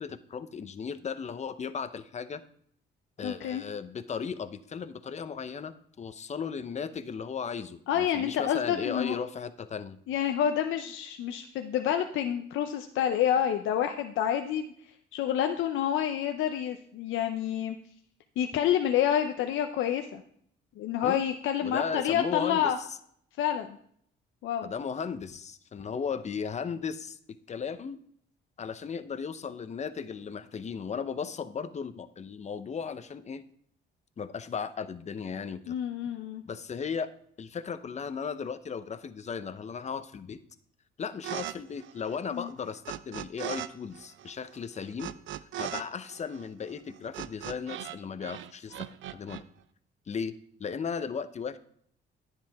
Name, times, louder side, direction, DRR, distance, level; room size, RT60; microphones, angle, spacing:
voice 1, 0.0-2.4 3.2-10.0 21.0-21.2 21.6-22.7 24.6-28.0 28.6-33.4 34.2-35.7 36.4-37.1 37.4-40.4 41.0-45.1 45.6-49.4 50.1-50.3 50.6-51.6, left 6 dB, 35° left, 12 dB, 0.7 m, -36 dB
voice 2, 3.2-3.6 7.9-9.2 10.1-14.7 15.1-17.8 18.4-20.2 20.8-22.8 23.4-23.8 24.4-24.7 35.7-36.4 42.3-42.5, left 9 dB, 80° left, 6 dB, 0.6 m, -28 dB
sound 1, 41.2-41.5 41.8-43.7 43.9-48.0 48.2-49.4, right 12 dB, 75° right, 0.5 m, -38 dB
10.5 x 9.4 x 3.5 m, 0.65 s
cardioid pair, 90°, 20 cm